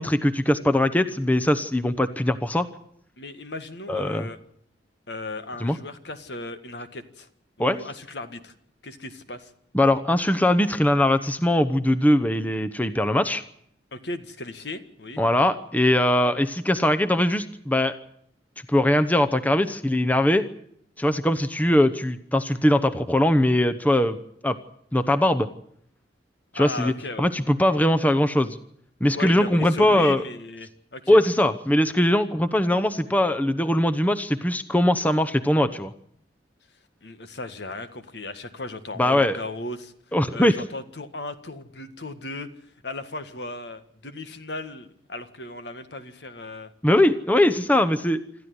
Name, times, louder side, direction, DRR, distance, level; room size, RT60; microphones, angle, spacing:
voice 1, 0.0-2.7 3.9-4.3 5.6-5.8 7.6-7.8 9.7-13.4 15.2-17.9 18.7-20.5 21.0-24.2 24.4-24.6 24.9-25.5 26.5-26.9 27.2-28.6 29.0-30.2 31.1-35.9 39.0-39.4 40.1-40.5 46.8-48.2, left 1 dB, 10° left, 9 dB, 0.9 m, -21 dB
voice 2, 3.2-4.4 5.1-7.3 7.6-8.5 8.8-9.5 13.9-15.2 26.5-27.3 29.1-31.2 37.0-39.9 40.3-42.5 42.8-46.7, left 2 dB, 65° left, 10 dB, 1.7 m, -36 dB
26.5 x 14.0 x 9.6 m, 0.69 s
head